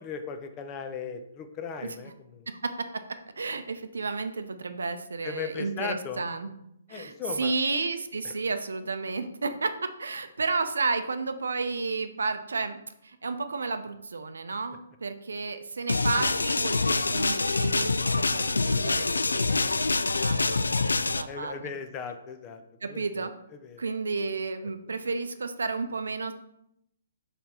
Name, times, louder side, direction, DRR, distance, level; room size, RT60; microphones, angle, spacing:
voice 1, 0.0-2.5 5.2-6.2 6.9-7.5 8.2-8.3 21.3-23.3 23.6-23.8, left 6 dB, 25° left, 7 dB, 0.7 m, -37 dB
voice 2, 2.5-6.5 6.9-21.7 22.8-23.3 23.8-26.3, right 4 dB, 75° right, 9 dB, 0.6 m, -32 dB
sound 1, 15.9-21.2, left 3 dB, 85° left, 0.3 m, -25 dB
5.3 x 4.3 x 4.3 m, 0.78 s
figure-of-eight pair, 135°, 0 cm